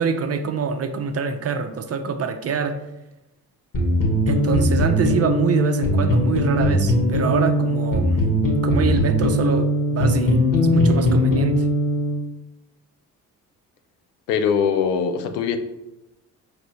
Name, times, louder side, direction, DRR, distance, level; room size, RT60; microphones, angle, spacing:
voice 1, 0.0-2.8 4.3-8.2 8.6-10.4 10.7-11.7, right 5 dB, 35° right, 8 dB, 0.5 m, -25 dB
sound 1, 3.7-12.2, equal, 45° left, 1.4 m, -20 dB
voice 2, 14.3-15.6, left 7 dB, 85° left, 8 dB, 0.5 m, -21 dB
5.0 x 3.2 x 3.1 m, 0.97 s
hypercardioid pair, 45°, 46 cm